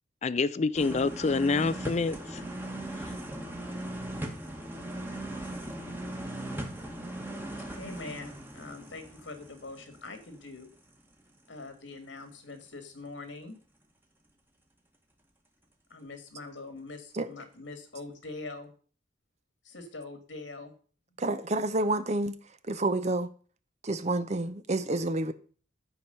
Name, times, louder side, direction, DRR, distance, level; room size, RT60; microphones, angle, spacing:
voice 1, 0.2-2.4, left 4 dB, 35° left, 0.4 m, -27 dB
sound 1, 0.8-10.6 10.9-11.0, right 1 dB, 10° right, 1.5 m, -39 dB
voice 2, 7.7-10.7 11.5-13.6 15.9-18.7 19.6-20.7, left 3 dB, 85° left, 1.7 m, -43 dB
voice 3, 21.2-22.3 22.7-23.3 23.8-25.3, right 2 dB, 35° right, 0.7 m, -29 dB
12.5 x 4.7 x 6.7 m
head